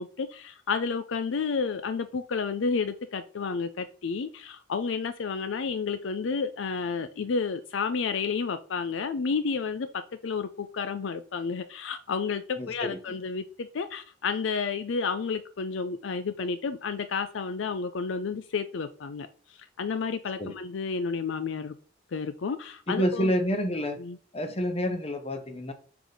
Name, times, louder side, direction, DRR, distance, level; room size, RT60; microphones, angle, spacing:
voice 1, 0.0-21.7 22.1-23.3 24.0-24.2, left 5 dB, 70° left, 0.4 m, -31 dB
voice 2, 12.6-13.2 20.4-20.6 22.9-24.0 24.3-25.7, equal, 30° left, 0.8 m, -29 dB
4.7 x 3.9 x 5.1 m
head